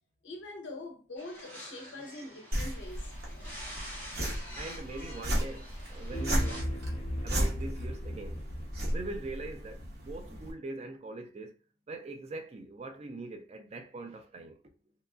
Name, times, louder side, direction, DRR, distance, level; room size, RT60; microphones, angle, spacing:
voice 1, 0.2-3.1, left 2 dB, 70° left, 0.6 m, -43 dB
sound 1, 1.2-6.6, equal, 10° left, 1.0 m, -47 dB
Metal Swoosh, 2.5-10.5, equal, 50° right, 0.8 m, -35 dB
voice 2, 4.5-6.8 7.2-8.4 8.9-11.6 11.9-14.6, right 2 dB, 35° right, 0.3 m, -42 dB
sound 2, 6.1-9.5, equal, 30° left, 0.8 m, -37 dB
2.8 x 2.3 x 2.3 m
head